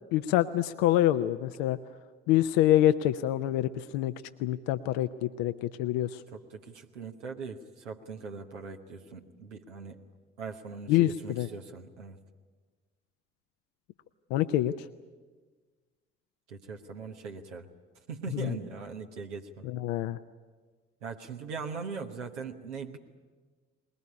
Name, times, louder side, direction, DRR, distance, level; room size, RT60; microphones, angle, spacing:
voice 1, 0.1-1.8 2.3-4.1 4.4-6.2 10.9-11.5 14.3-14.9 18.3-18.5 19.6-20.2, left 13 dB, 75° left, 10 dB, 0.7 m, -26 dB
voice 2, 6.3-10.0 10.4-12.2 16.5-17.7 18.1-19.7 21.0-23.0, right 5 dB, 90° right, 3 dB, 1.1 m, -40 dB
21.0 x 19.5 x 9.8 m, 1.4 s
hypercardioid pair, 45°, 34 cm